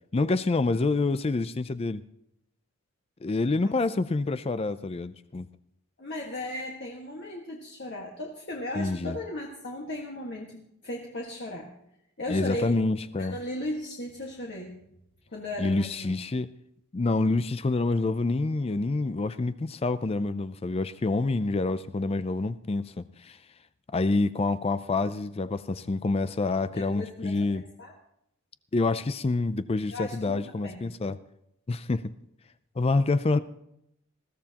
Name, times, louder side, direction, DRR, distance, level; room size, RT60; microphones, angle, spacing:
voice 1, 0.1-2.0 3.2-5.5 8.7-9.2 12.3-13.4 15.6-16.5 16.9-23.4 23.9-27.6 28.7-31.2 31.7-32.0 32.8-33.4, left 3 dB, 25° left, 14 dB, 0.4 m, -27 dB
voice 2, 6.0-11.7 12.2-12.7 13.2-14.8 15.3-16.1 26.7-27.3 27.8-27.9 29.9-30.4 30.6-30.9, left 1 dB, 50° left, -1 dB, 1.6 m, -36 dB
20.5 x 14.0 x 2.9 m, 0.79 s
head